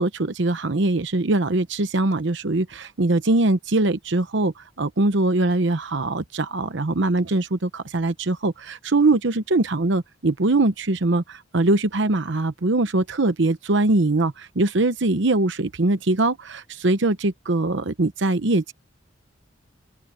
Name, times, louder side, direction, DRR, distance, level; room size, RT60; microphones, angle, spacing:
voice 1, 0.0-18.7, right 2 dB, 65° right, 0.9 m, -22 dB
open air
head